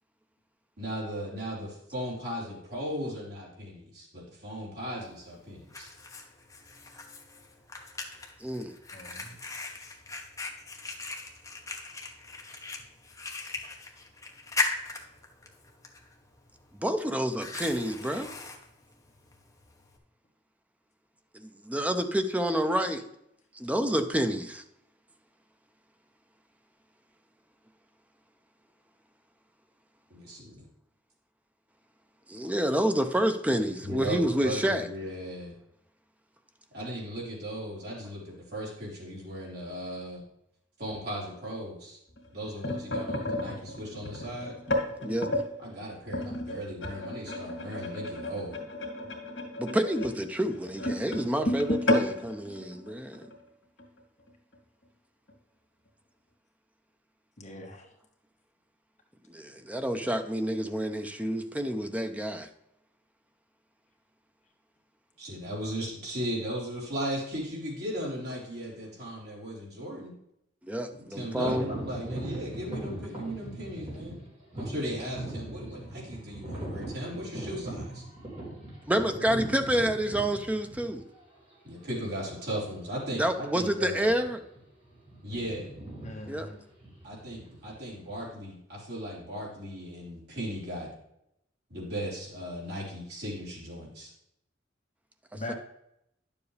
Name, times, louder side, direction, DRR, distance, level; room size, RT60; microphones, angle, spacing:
voice 1, 0.8-5.9 30.1-30.6 33.8-35.6 36.7-40.2 40.8-42.0 42.3-44.6 45.6-48.6 65.2-70.1 71.0-74.2 74.5-78.0 79.1-79.5 81.6-84.1 85.2-85.7 87.0-90.9 91.7-94.1, equal, 60° right, -5 dB, 3.8 m, -37 dB
Fire, 5.0-20.0, left 3 dB, 15° left, 1.0 m, -39 dB
voice 2, 8.4-8.7 16.7-18.3 21.3-23.1 23.5-24.6 32.3-34.9 45.0-45.3 49.6-53.3 59.3-62.5 70.6-71.6 78.9-81.0 83.2-84.4 86.3-86.5 95.3-95.5, right 1 dB, 10° right, 7 dB, 0.6 m, -28 dB
voice 3, 8.9-9.4 57.4-57.9 86.0-86.5 95.3-95.5, left 1 dB, 40° left, 1 dB, 1.4 m, -41 dB
sound 1, 42.2-45.5 46.1-53.4 53.8-54.0 54.3-54.6 55.3-55.4, left 1 dB, 80° left, 2.1 m, -32 dB
sound 2, 71.4-81.2 81.9-82.0 82.6-82.8 83.1-83.4 84.0-84.6 84.8-88.2, right 1 dB, 35° right, 3.9 m, -40 dB
10.5 x 7.1 x 3.3 m, 0.78 s
head